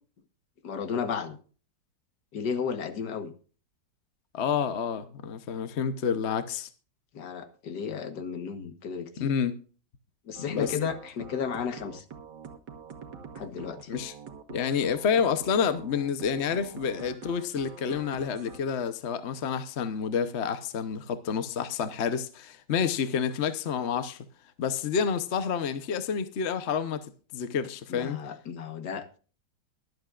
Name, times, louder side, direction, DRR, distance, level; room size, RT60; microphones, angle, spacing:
voice 1, 0.6-1.4 2.3-3.3 7.1-9.3 10.3-12.0 13.4-13.9 27.9-29.2, left 6 dB, 70° left, 1.8 m, -33 dB
voice 2, 4.3-6.7 9.2-9.6 10.5-10.7 13.9-14.1 14.5-24.2 24.6-27.1 27.3-28.2, left 7 dB, 50° left, 0.9 m, -29 dB
sound 1, 10.3-18.6, right 6 dB, 75° right, 2.0 m, -45 dB
22.5 x 8.0 x 2.4 m
omnidirectional pair, 1.9 m